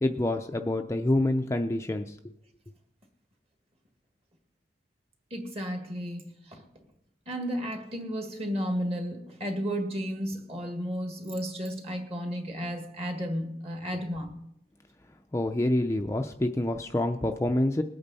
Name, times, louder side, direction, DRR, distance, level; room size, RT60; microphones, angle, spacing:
voice 1, 0.0-2.2 13.9-14.0 15.3-17.8, left 1 dB, 15° left, 5 dB, 0.4 m, -27 dB
voice 2, 5.3-6.6 7.3-14.3, equal, 30° right, 4 dB, 1.9 m, -33 dB
20.5 x 8.8 x 4.1 m, 0.80 s
head